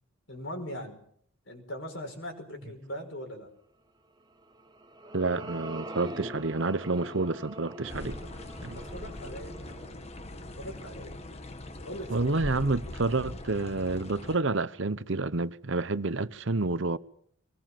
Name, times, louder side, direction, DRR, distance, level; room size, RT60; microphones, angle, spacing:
voice 1, 0.3-1.0 1.5-3.5 8.7-9.8 10.6-11.2 11.8-12.8, equal, 60° left, 5.6 m, -41 dB
sound 1, 4.4-11.0, right 1 dB, 20° right, 1.4 m, -43 dB
voice 2, 5.1-8.2 8.6-8.8 12.1-17.0, right 3 dB, 60° right, 0.9 m, -29 dB
sound 2, 7.8-14.4, left 1 dB, 30° left, 1.3 m, -41 dB
24.5 x 20.5 x 7.6 m
head